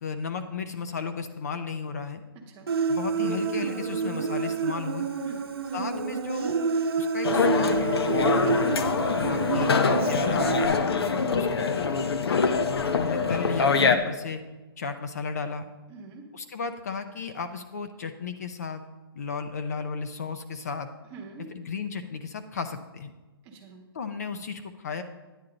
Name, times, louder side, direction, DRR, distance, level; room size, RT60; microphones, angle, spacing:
voice 1, 0.0-2.2 2.9-5.1 5.7-6.6 7.0-8.1 9.1-10.7 11.3-12.0 12.3-12.4 12.9-14.4 14.8-15.7 16.3-18.8 19.1-20.9 21.5-23.1 23.9-25.0, left 5 dB, 40° left, 9 dB, 0.5 m, -34 dB
voice 2, 2.3-2.7 5.2-5.4 8.4-8.7 10.9-11.0 15.9-16.2 21.1-21.5 23.4-23.8, right 4 dB, 15° right, 0 dB, 0.8 m, -42 dB
Human voice, 2.7-10.7, right 5 dB, 70° right, 0.9 m, -28 dB
sound 1, 7.2-14.0, left 5 dB, 75° left, 0.8 m, -24 dB
9.9 x 8.8 x 3.9 m, 1.2 s
hypercardioid pair, 175°, 13 cm